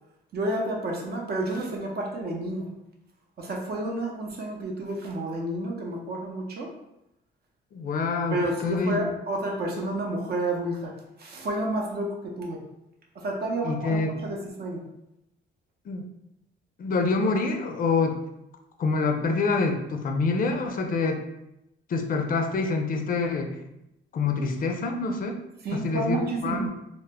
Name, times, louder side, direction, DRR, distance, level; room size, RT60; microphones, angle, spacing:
voice 1, 0.3-2.7 3.4-6.7 8.3-10.9 11.2-12.6 13.2-14.8 25.6-26.7, right 1 dB, 55° right, 0 dB, 0.7 m, -30 dB
voice 2, 7.7-9.0 13.6-14.1 15.9-16.0 16.8-18.2 18.8-21.2 21.9-23.5 24.1-25.4 25.7-26.7, left 4 dB, 45° left, 4 dB, 0.4 m, -26 dB
2.2 x 2.1 x 3.4 m, 0.87 s
cardioid pair, 90°, 20 cm